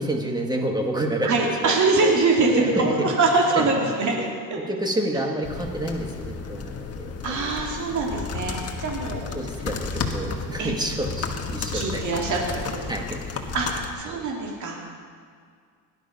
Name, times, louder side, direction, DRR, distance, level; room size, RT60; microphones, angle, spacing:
voice 1, 0.0-1.8 2.0-2.2 2.5-3.1 3.5-3.7 4.1-4.3 4.7-7.5 9.0-12.1 12.9-13.4 14.1-14.3, right 1 dB, 10° right, 2 dB, 1.8 m, -29 dB
voice 2, 1.2-4.1 7.2-9.4 10.6-10.7 11.7-12.9 13.5-15.0, right 3 dB, 50° right, -1 dB, 3.0 m, -23 dB
sound 1, 5.4-13.9, left 4 dB, 40° left, 1.5 m, -32 dB
17.5 x 11.5 x 5.4 m, 2.1 s
cardioid pair, 125°, 39 cm